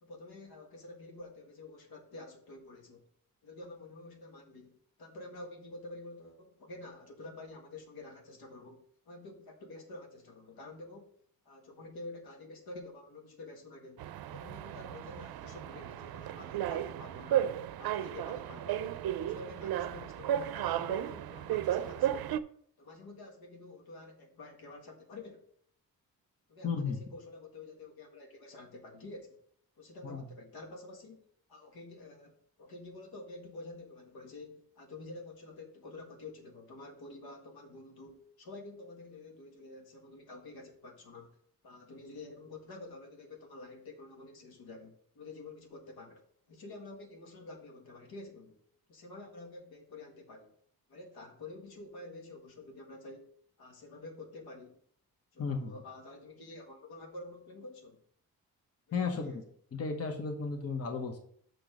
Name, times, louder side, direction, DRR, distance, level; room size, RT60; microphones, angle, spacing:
voice 1, 0.0-3.0 3.4-11.2 11.4-14.0 14.3-19.0 19.3-22.3 22.8-25.5 26.5-29.4 29.8-31.2 31.5-41.4 41.6-48.6 48.9-50.5 50.9-53.3 53.6-54.8 55.3-58.0 58.9-59.4, left 2 dB, 80° left, 2 dB, 1.6 m, -49 dB
sound 1, 14.0-22.4, right 11 dB, 80° right, 0.5 m, -34 dB
voice 2, 26.6-27.0 30.0-30.2 55.4-55.7 58.9-59.4 59.7-61.2, left 5 dB, 40° left, 4 dB, 1.0 m, -34 dB
6.5 x 4.5 x 5.2 m, 0.62 s
cardioid pair, 90°, 36 cm